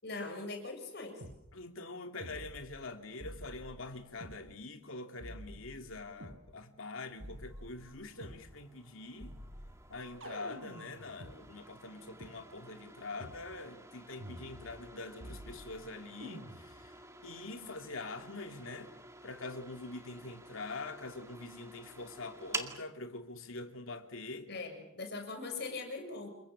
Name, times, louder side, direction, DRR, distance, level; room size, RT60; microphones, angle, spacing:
voice 1, 0.0-1.2 24.5-26.3, left 3 dB, 55° left, 7.1 m, -41 dB
sound 1, 1.2-1.4 2.2-2.9 3.2-4.4 5.2-6.4 7.2-8.4 9.2-11.4 12.2-12.3 13.2-13.4 14.2-14.9 15.2-15.8 16.2-16.8, equal, 75° right, 7.1 m, -48 dB
voice 2, 1.5-9.3 9.9-16.9 17.2-18.9 19.2-24.5, left 3 dB, 85° left, 2.6 m, -44 dB
sound 2, 7.1-22.8, right 2 dB, 15° right, 2.1 m, -50 dB
28.5 x 22.5 x 7.4 m
head